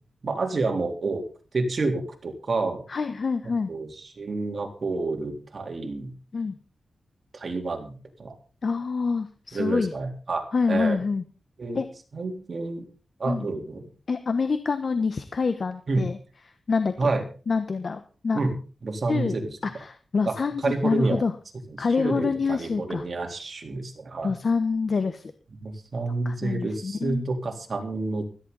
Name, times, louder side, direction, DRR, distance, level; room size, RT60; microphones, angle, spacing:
voice 1, 0.2-1.2 1.5-2.8 3.7-6.1 7.3-8.4 9.5-11.0 11.6-11.8 12.1-12.9 13.2-13.8 15.9-16.1 17.0-17.2 18.3-18.5 18.8-19.5 20.3-20.4 20.6-21.2 21.7-24.3 25.6-28.2, right 3 dB, 45° right, 3 dB, 3.8 m, -29 dB
voice 2, 2.9-3.7 6.3-6.5 8.6-9.9 10.5-11.2 11.7-11.8 13.3-13.5 14.1-16.2 16.7-17.1 17.5-18.4 19.1-19.3 19.6-21.3 21.8-23.0 24.2-25.3 26.2-27.2, left 4 dB, 50° left, 9 dB, 1.2 m, -26 dB
17.0 x 14.0 x 4.1 m, 0.37 s
wide cardioid pair, 115°, 0 cm